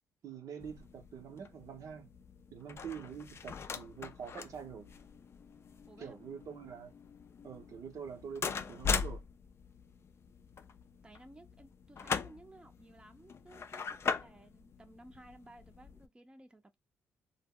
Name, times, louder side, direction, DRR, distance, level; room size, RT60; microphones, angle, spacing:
voice 1, 0.2-2.1 2.5-4.9 6.0-6.9 7.4-9.2, right 7 dB, 65° right, 0.6 m, -45 dB
sound 1, 0.6-16.1, left 5 dB, 45° left, 0.4 m, -41 dB
voice 2, 5.9-6.2 11.0-16.8, right 1 dB, 15° right, 0.6 m, -57 dB
2.0 x 2.0 x 3.5 m
supercardioid pair, 60°, 6 cm